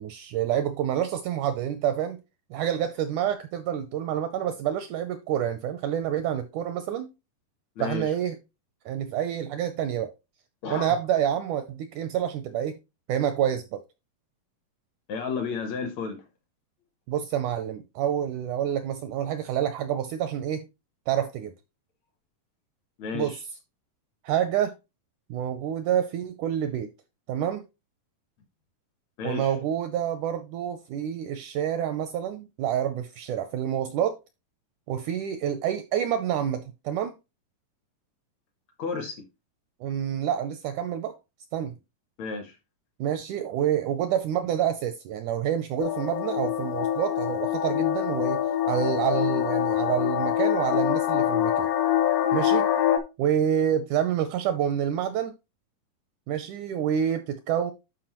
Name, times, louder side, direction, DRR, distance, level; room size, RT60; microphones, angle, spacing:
voice 1, 0.0-2.2 2.5-7.1 7.8-8.4 8.9-10.1 10.7-12.8 13.1-13.8 17.1-20.7 21.1-21.5 23.1-23.4 24.2-24.7 25.3-26.9 27.3-27.6 29.2-34.2 34.9-37.1 39.8-41.2 41.5-41.8 43.0-51.7 52.3-52.7 53.2-55.3 56.3-57.7, right 10 dB, 80° right, 1.8 m, -28 dB
voice 2, 10.6-10.9 15.1-16.2 23.0-23.4 29.2-29.5 38.8-39.2 42.2-42.5, left 5 dB, 70° left, 1.7 m, -32 dB
sound 1, 45.8-53.0, left 11 dB, 85° left, 2.5 m, -25 dB
11.5 x 4.6 x 2.9 m
omnidirectional pair, 4.0 m